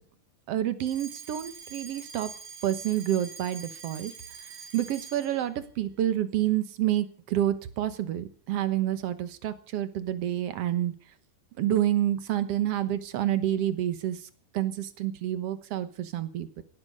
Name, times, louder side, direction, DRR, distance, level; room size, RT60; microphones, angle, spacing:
voice 1, 0.5-2.3 2.6-4.1 4.7-10.9 11.6-14.2 14.5-16.6, right 12 dB, 60° right, 12 dB, 1.8 m, -28 dB
Alarm, 0.8-5.4, right 5 dB, 80° right, 4.1 m, -44 dB
17.5 x 15.0 x 5.4 m, 0.42 s
omnidirectional pair, 3.9 m